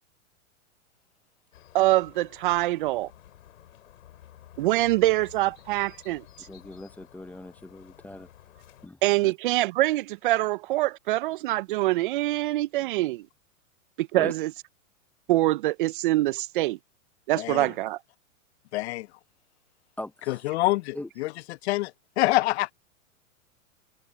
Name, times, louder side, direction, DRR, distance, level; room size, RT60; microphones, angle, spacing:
sound 1, 1.5-8.9, left 11 dB, 75° left, 5.5 m, -52 dB
voice 1, 1.7-3.1 4.6-6.2 9.0-13.3 14.0-14.5 15.3-16.8 17.3-18.0, right 17 dB, 40° right, 0.4 m, -24 dB
voice 2, 6.5-8.3 8.8-9.3 14.1-14.3 20.0-20.3 20.9-21.1, left 1 dB, 5° left, 0.7 m, -40 dB
voice 3, 17.3-17.7 18.7-19.1 20.3-21.3 21.6-22.7, left 18 dB, 55° left, 0.5 m, -26 dB
hypercardioid pair, 135°, 41 cm